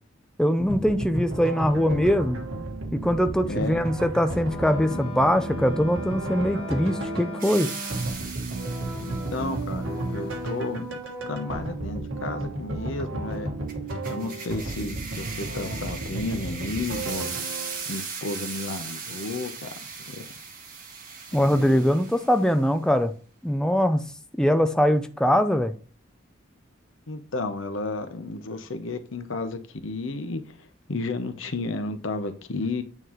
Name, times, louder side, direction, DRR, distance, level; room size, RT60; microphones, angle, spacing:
voice 1, 0.4-2.4 2.9-7.7 21.3-23.1 23.4-24.0 24.4-25.7, equal, 5° left, 0.4 m, -22 dB
sound 1, 0.6-17.9, right 1 dB, 90° right, 1.2 m, -33 dB
voice 2, 3.4-3.9 9.0-10.9 11.3-13.5 14.1-17.3 17.9-19.7 20.1-20.3 21.3-21.6 27.1-32.8, left 3 dB, 75° left, 0.9 m, -32 dB
Wind instrument woodwind instrument, 4.4-8.3, right 1 dB, 30° left, 1.0 m, -38 dB
sound 2, 7.4-9.7 13.7-22.6, right 5 dB, 45° right, 1.5 m, -38 dB
9.0 x 3.9 x 3.1 m
head